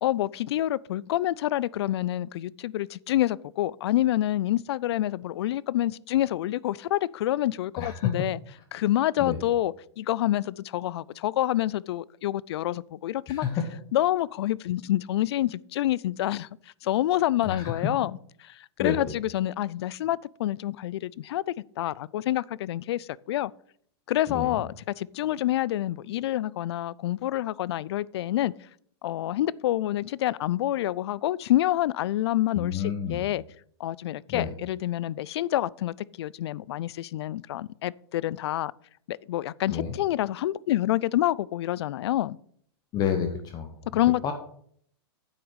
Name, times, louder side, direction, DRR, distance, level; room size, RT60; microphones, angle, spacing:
voice 1, 0.0-8.4 8.7-13.4 13.9-16.5 16.8-18.1 18.4-23.5 24.1-24.7 25.0-28.5 29.0-32.8 33.1-33.4 33.8-38.7 39.1-42.4 43.9-44.3, left 14 dB, 70° left, 0.4 m, -27 dB
voice 2, 7.8-8.1 9.2-9.4 13.3-13.7 17.4-17.8 18.8-19.0 24.3-24.6 32.5-33.3 34.3-34.5 39.7-39.9 42.9-43.7 44.2-44.3, left 7 dB, 30° left, 1.1 m, -29 dB
8.6 x 6.2 x 6.3 m
hypercardioid pair, 145°, 14 cm